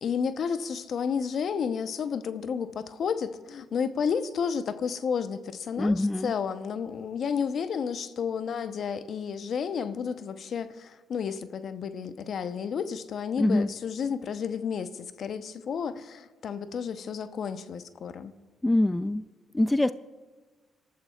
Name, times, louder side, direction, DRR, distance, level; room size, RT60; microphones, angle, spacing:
voice 1, 0.0-18.3, left 6 dB, 60° left, 11 dB, 0.8 m, -31 dB
voice 2, 5.8-6.3 13.4-13.7 18.6-19.9, left 1 dB, 15° left, 14 dB, 0.4 m, -24 dB
26.5 x 13.5 x 2.4 m, 1.4 s
hypercardioid pair, 50°, 0 cm